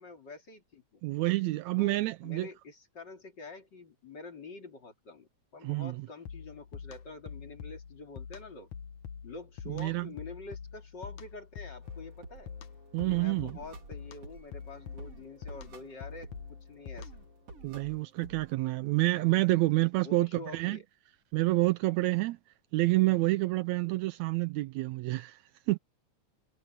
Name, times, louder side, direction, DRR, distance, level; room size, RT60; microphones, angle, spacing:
voice 1, 0.0-1.0 1.8-8.7 9.2-12.5 13.1-17.1 20.0-20.8, left 3 dB, 35° left, 3.2 m, -47 dB
voice 2, 1.0-2.5 5.6-6.1 9.7-10.1 12.9-13.6 17.6-20.8 21.3-22.4 22.7-25.4 25.7-25.8, right 20 dB, 80° right, 1.8 m, -28 dB
sound 1, 6.3-17.4, left 7 dB, 80° left, 2.9 m, -46 dB
sound 2, 11.8-18.5, right 3 dB, 50° right, 4.9 m, -52 dB
omnidirectional pair, 3.4 m